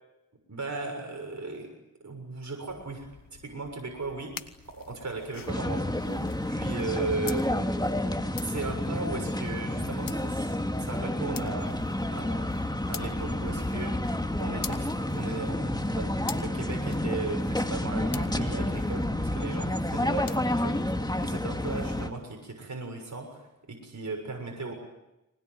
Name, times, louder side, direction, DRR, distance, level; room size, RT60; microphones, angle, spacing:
voice 1, 0.5-1.7 2.0-3.1 3.4-4.3 4.7-7.7 8.4-11.8 12.1-12.5 12.9-14.1 14.4-16.1 16.4-20.3 20.6-24.7, right 3 dB, 55° right, 2 dB, 6.8 m, -37 dB
sound 1, 2.7-22.1, left 6 dB, 75° left, 1.5 m, -47 dB
sound 2, 5.5-22.1, left 1 dB, 10° left, 2.2 m, -30 dB
24.5 x 20.5 x 9.3 m, 0.92 s
cardioid pair, 50°, 34 cm